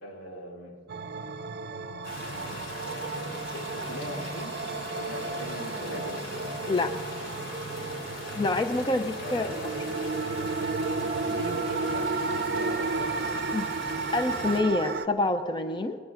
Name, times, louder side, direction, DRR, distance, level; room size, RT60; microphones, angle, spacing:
voice 1, 0.0-0.8 2.8-4.6 4.9-6.2 9.2-10.2 11.2-13.1, equal, 90° left, -1 dB, 2.5 m, -41 dB
sound 1, 0.9-15.1, right 4 dB, 55° right, 0.5 m, -33 dB
sound 2, 2.0-14.6, left 1 dB, 70° left, 3.8 m, -39 dB
voice 2, 8.3-9.5 13.5-13.7 14.1-16.0, left 2 dB, 25° left, 8 dB, 0.5 m, -27 dB
21.0 x 20.5 x 2.5 m, 2.1 s
head